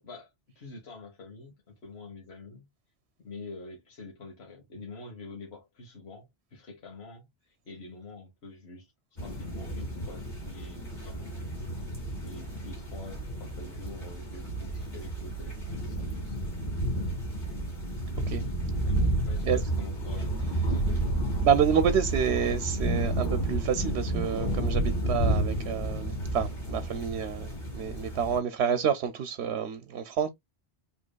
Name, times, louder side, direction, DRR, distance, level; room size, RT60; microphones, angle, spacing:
voice 1, 0.0-2.7 3.2-8.9 9.2-11.5 12.2-16.4 18.4-21.1 25.0-25.2, left 3 dB, 75° left, 1.5 m, -47 dB
sound 1, 9.2-28.4, right 1 dB, 45° left, 2.1 m, -31 dB
voice 2, 21.4-30.3, right 7 dB, 85° right, 0.9 m, -28 dB
5.2 x 3.3 x 2.2 m
omnidirectional pair, 1.1 m